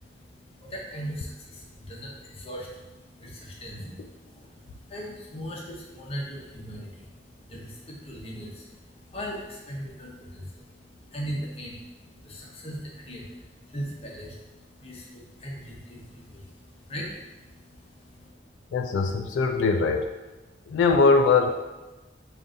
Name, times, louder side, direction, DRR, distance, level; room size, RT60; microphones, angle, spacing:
voice 1, 0.0-18.3, equal, 35° left, -2 dB, 0.7 m, -39 dB
voice 2, 18.7-20.1 20.7-21.5, left 4 dB, 85° left, 4 dB, 0.3 m, -21 dB
3.7 x 2.5 x 3.8 m, 1.1 s
head